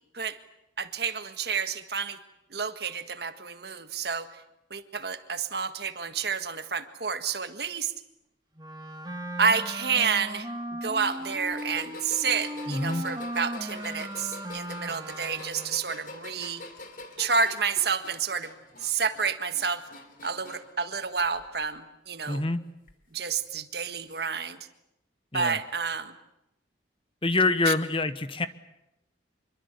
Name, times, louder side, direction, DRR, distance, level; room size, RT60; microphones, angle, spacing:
voice 1, 0.8-2.2 2.5-4.3 4.7-7.9 9.4-16.6 17.2-18.5 18.8-19.8 20.2-22.4 23.1-24.6 25.3-26.1 27.7-27.8, right 6 dB, 60° right, 10 dB, 1.7 m, -29 dB
Wind instrument woodwind instrument, 8.6-15.8, right 1 dB, 20° right, 2.3 m, -37 dB
sound 1, 11.1-20.8 21.2-21.8 22.9-23.0 24.1-24.2, left 2 dB, 50° left, 3.1 m, -45 dB
voice 2, 12.7-13.1 22.3-22.6 25.3-25.6 27.2-28.5, left 3 dB, 30° left, 12 dB, 1.1 m, -26 dB
26.0 x 23.5 x 8.3 m, 0.87 s
head